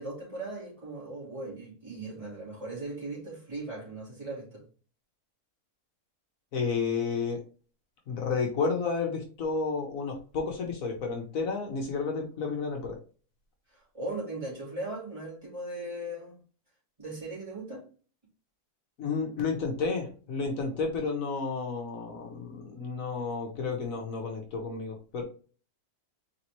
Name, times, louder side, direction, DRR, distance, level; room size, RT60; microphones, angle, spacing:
voice 1, 0.0-4.6 13.7-16.4 17.0-17.8, right 2 dB, 20° right, 2.2 m, -38 dB
voice 2, 6.5-7.4 8.1-13.0 19.0-25.2, left 4 dB, 65° left, 1.2 m, -31 dB
4.1 x 3.4 x 2.9 m
omnidirectional pair, 1.6 m